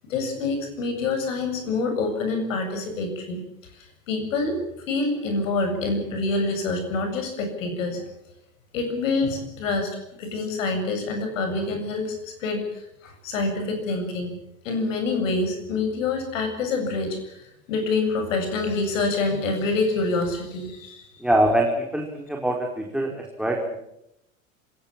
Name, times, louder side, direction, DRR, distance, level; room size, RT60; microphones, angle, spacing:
voice 1, 0.1-3.4 4.1-4.6 4.9-8.0 8.7-9.9 10.2-14.3 14.6-21.2, left 3 dB, 65° left, 6 dB, 7.8 m, -26 dB
voice 2, 21.2-23.8, right 1 dB, ahead, 0 dB, 4.6 m, -24 dB
26.5 x 17.5 x 7.5 m, 0.80 s
figure-of-eight pair, 80°, 41 cm